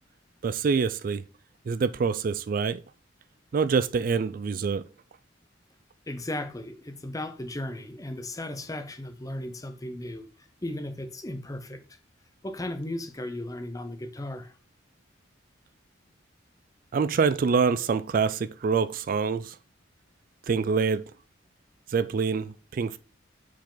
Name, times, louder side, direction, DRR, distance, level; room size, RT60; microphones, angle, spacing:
voice 1, 0.4-1.2 1.7-2.8 3.5-4.9 16.9-19.6 20.5-21.1 21.9-23.0, right 5 dB, 45° right, 0.3 m, -25 dB
voice 2, 6.1-11.8 12.4-14.6, left 1 dB, 15° left, 0.7 m, -36 dB
7.0 x 4.7 x 3.8 m
head